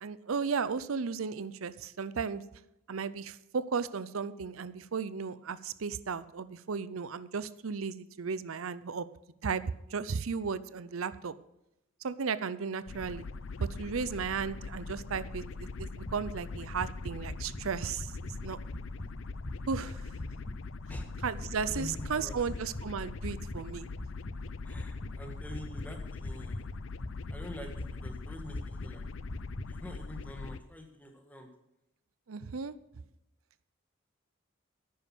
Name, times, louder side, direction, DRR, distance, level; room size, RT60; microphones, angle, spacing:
voice 1, 0.0-2.4 2.9-9.1 9.4-9.6 9.9-11.3 12.0-13.2 13.6-18.6 19.7-20.0 21.2-23.9 32.3-32.7, right 5 dB, 90° right, 16 dB, 0.6 m, -35 dB
sound 1, 12.9-30.6, left 4 dB, 75° left, 0.5 m, -42 dB
sound 2, 15.7-29.7, left 1 dB, 35° left, 1.3 m, -43 dB
voice 2, 21.4-22.4 24.6-26.7 27.3-29.0 29.7-31.5, left 1 dB, 10° left, 4 dB, 1.6 m, -46 dB
10.5 x 9.5 x 6.1 m, 0.86 s
head